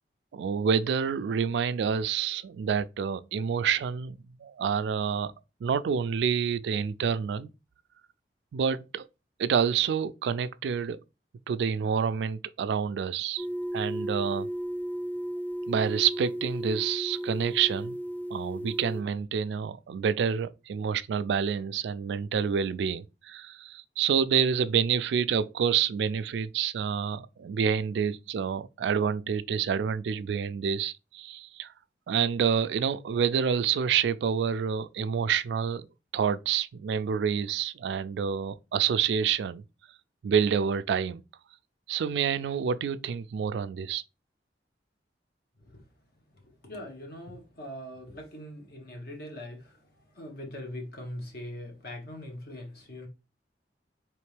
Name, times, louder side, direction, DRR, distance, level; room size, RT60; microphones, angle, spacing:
voice 1, 0.3-5.3 5.6-7.5 8.5-9.0 9.4-11.0 11.5-13.5 13.7-14.5 15.7-18.0 18.3-31.7 32.1-35.9 36.1-39.6 40.2-41.2 41.9-44.0, right 7 dB, 70° right, 0.3 m, -28 dB
sound 1, 13.4-19.0, right 1 dB, 10° left, 0.4 m, -34 dB
voice 2, 46.3-49.8 50.1-53.1, left 1 dB, 60° left, 1.2 m, -41 dB
4.2 x 3.1 x 3.3 m
head